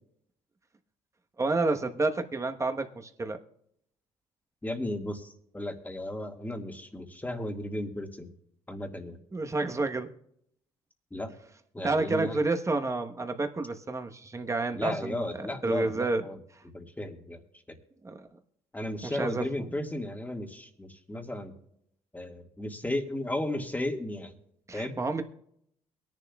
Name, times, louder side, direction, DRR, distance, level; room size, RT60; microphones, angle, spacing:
voice 1, 1.4-3.4 9.3-10.1 11.8-16.2 18.0-18.3 19.0-19.7 24.7-25.2, right 3 dB, 25° right, 5 dB, 1.2 m, -30 dB
voice 2, 4.6-8.3 8.7-9.2 11.1-11.3 11.7-12.4 14.7-16.4 16.7-17.4 18.7-21.5 22.1-24.3 24.7-24.9, left 1 dB, 15° left, 4 dB, 1.8 m, -34 dB
22.5 x 10.5 x 2.4 m, 0.72 s
supercardioid pair, 70°, 13 cm